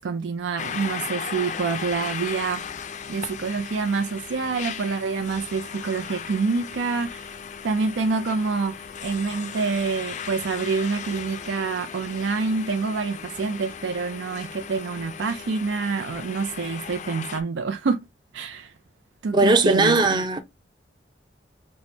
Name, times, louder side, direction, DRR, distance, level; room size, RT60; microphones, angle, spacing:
voice 1, 0.0-2.6 3.1-7.4 7.6-18.0 18.3-18.7 19.2-20.2, right 4 dB, 85° right, 0.4 m, -27 dB
sound 1, 0.6-17.4, left 7 dB, 40° left, 0.4 m, -36 dB
voice 2, 19.3-20.4, right 2 dB, 25° right, 0.5 m, -18 dB
6.1 x 2.1 x 2.6 m
head